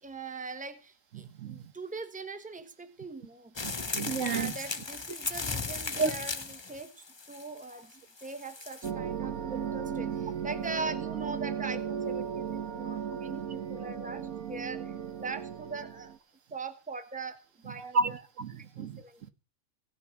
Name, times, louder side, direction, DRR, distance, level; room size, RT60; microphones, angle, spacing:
voice 1, 0.0-3.5 4.2-14.9 15.2-16.1 16.5-18.2 18.6-19.2, right 3 dB, 5° right, 1.1 m, -41 dB
voice 2, 1.1-1.7 3.6-4.5 6.0-6.1 17.7-19.3, right 4 dB, 65° right, 1.4 m, -32 dB
sound 1, 3.6-8.9, left 4 dB, 25° left, 0.7 m, -36 dB
sound 2, 8.8-16.2, right 8 dB, 85° right, 1.5 m, -36 dB
16.5 x 6.4 x 8.3 m
omnidirectional pair, 1.5 m